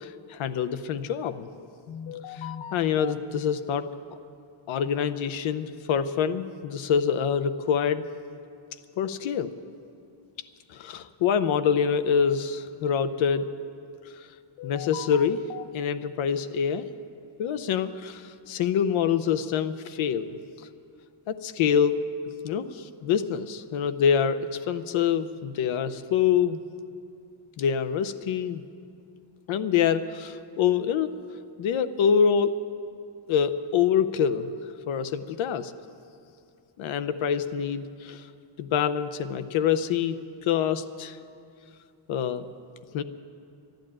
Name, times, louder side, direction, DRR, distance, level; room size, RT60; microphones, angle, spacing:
voice 1, 0.0-3.9 4.7-8.0 9.0-9.5 10.7-13.5 14.6-16.9 17.4-20.4 21.3-22.0 22.4-26.6 27.6-28.6 29.5-31.1 31.6-32.5 33.3-34.5 34.9-35.7 36.8-38.2 38.6-41.2 42.1-42.5 42.9-43.0, left 7 dB, 75° left, 11 dB, 0.8 m, -26 dB
12.0 x 11.5 x 8.8 m, 2.4 s
cardioid pair, 175°, 47 cm